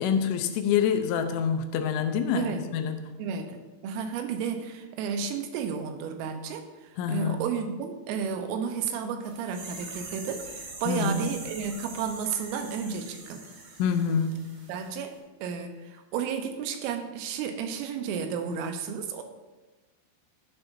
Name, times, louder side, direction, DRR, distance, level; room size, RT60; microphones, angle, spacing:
voice 1, 0.0-3.1 7.0-7.4 10.9-11.2 13.8-14.4, left 7 dB, 80° left, 7 dB, 3.0 m, -26 dB
voice 2, 3.2-13.4 14.1-14.2 14.7-15.2 15.4-19.2, right 6 dB, 85° right, 6 dB, 3.5 m, -32 dB
sound 1, 9.2-14.9 15.1-15.2, right 3 dB, 65° right, 4.2 m, -43 dB
13.0 x 11.0 x 2.7 m, 1.2 s
omnidirectional pair, 5.8 m